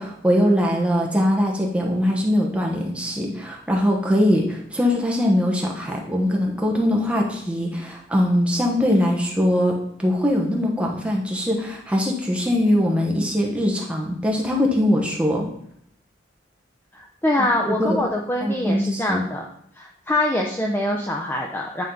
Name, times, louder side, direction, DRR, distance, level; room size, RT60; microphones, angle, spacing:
voice 1, 0.0-15.4 17.4-18.0 18.4-19.2, equal, 5° right, -1 dB, 1.1 m, -22 dB
voice 2, 16.9-19.5 19.7-21.8, left 1 dB, 10° left, 0 dB, 0.5 m, -24 dB
9.3 x 3.7 x 3.8 m, 0.70 s
head